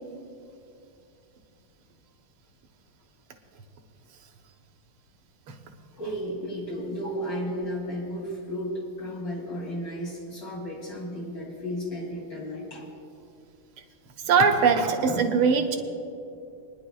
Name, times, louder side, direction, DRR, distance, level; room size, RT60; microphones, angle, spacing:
voice 1, 6.0-12.9, equal, 55° left, -5 dB, 3.4 m, -33 dB
voice 2, 14.2-15.8, right 5 dB, 80° right, 4 dB, 1.9 m, -21 dB
28.5 x 10.5 x 2.3 m, 2.6 s
omnidirectional pair, 2.4 m